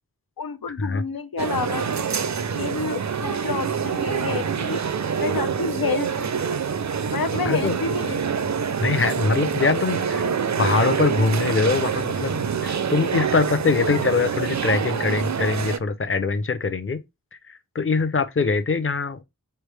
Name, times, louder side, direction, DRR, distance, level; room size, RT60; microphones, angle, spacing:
voice 1, 0.4-1.9 2.5-4.8 5.2-6.5 7.1-8.2, left 5 dB, 80° left, 0.6 m, -29 dB
sound 1, 1.4-15.8, right 6 dB, 55° right, 0.5 m, -26 dB
voice 2, 8.8-10.3 10.6-17.0 17.5-19.2, left 4 dB, 35° left, 0.7 m, -23 dB
3.9 x 3.3 x 3.3 m
wide cardioid pair, 40°, 35 cm